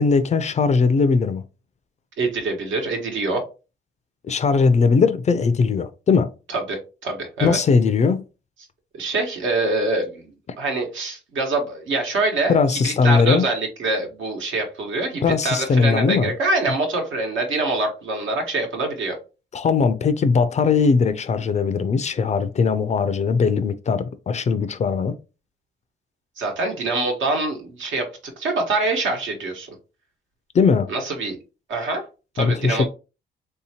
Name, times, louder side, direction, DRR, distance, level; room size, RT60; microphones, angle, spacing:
voice 1, 0.0-1.4 4.3-6.3 7.4-8.2 12.5-13.5 15.2-16.3 19.5-25.2 30.5-30.9 32.4-32.8, left 5 dB, 35° left, 0.4 m, -19 dB
voice 2, 2.2-3.4 6.5-7.6 9.0-10.3 10.6-19.2 26.4-28.1 28.4-29.7 30.9-31.4 31.7-32.0 32.3-32.9, right 2 dB, 75° right, 1.1 m, -25 dB
3.3 x 2.8 x 2.8 m
cardioid pair, 90°, 20 cm